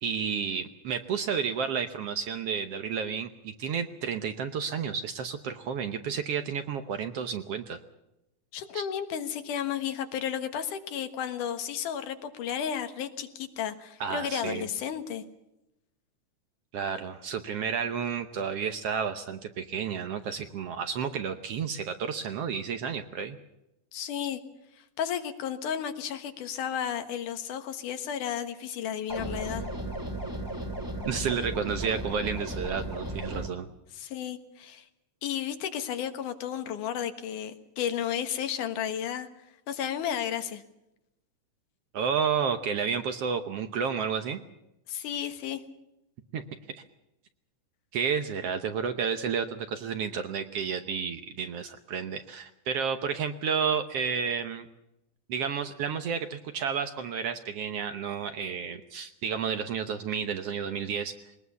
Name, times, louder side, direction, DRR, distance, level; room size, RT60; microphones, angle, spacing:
voice 1, 0.0-7.8 8.7-8.8 14.0-14.7 16.7-23.4 31.1-33.7 41.9-44.4 46.3-46.4 47.9-54.7 55.3-61.1, right 6 dB, 65° right, 8 dB, 1.7 m, -31 dB
voice 2, 8.5-15.2 23.9-24.4 24.8-29.7 33.9-34.9 35.2-39.3 39.7-40.6 44.9-45.6, left 9 dB, 80° left, 8 dB, 2.9 m, -33 dB
sound 1, 29.1-33.5, right 1 dB, 10° right, 1.8 m, -35 dB
21.5 x 19.5 x 7.0 m, 0.90 s
omnidirectional pair, 3.6 m